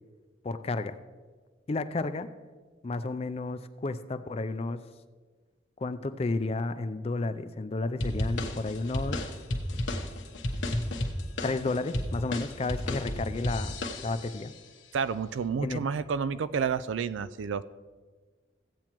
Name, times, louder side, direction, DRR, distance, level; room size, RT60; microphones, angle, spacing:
voice 1, 0.4-1.0 1.7-2.3 2.8-4.8 5.8-9.3 11.4-13.7 14.0-14.5 15.6-15.8, left 3 dB, 35° left, 11 dB, 0.4 m, -32 dB
sound 1, 8.0-14.4, left 1 dB, 85° left, 1.0 m, -32 dB
voice 2, 14.9-17.6, right 6 dB, 90° right, 15 dB, 0.4 m, -30 dB
15.0 x 8.6 x 3.0 m, 1.4 s
head